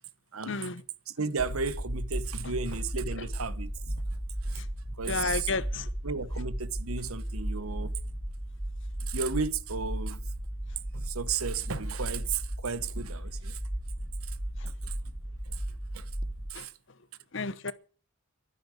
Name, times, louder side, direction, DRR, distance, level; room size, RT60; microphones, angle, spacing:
voice 1, 0.5-0.8 4.5-4.6 5.1-5.9 16.5-16.7 17.3-17.7, left 4 dB, 60° left, 1.0 m, -32 dB
voice 2, 1.1-5.5 6.0-7.9 9.0-10.2 10.9-13.6 14.2-14.4 14.6-15.0 15.5-15.6 15.9-16.1 16.5-16.7, right 5 dB, 90° right, 1.1 m, -34 dB
sound 1, 1.4-16.5, right 1 dB, 20° right, 1.8 m, -35 dB
11.5 x 10.0 x 9.3 m
head